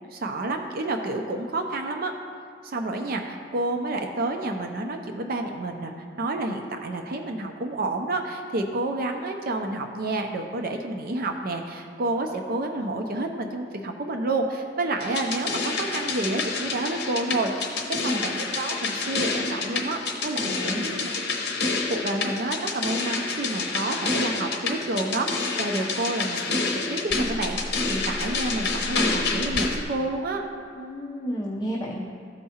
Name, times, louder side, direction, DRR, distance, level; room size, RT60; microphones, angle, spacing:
voice 1, 0.1-2.1 2.6-21.2 21.6-30.4, right 2 dB, 50° right, 4 dB, 0.5 m, -29 dB
sound 1, 15.0-29.8, left 3 dB, 60° left, 0.9 m, -28 dB
voice 2, 17.9-18.3 20.4-20.9 30.8-32.0, equal, 20° left, -4 dB, 0.6 m, -32 dB
13.5 x 4.6 x 2.8 m, 2.3 s
head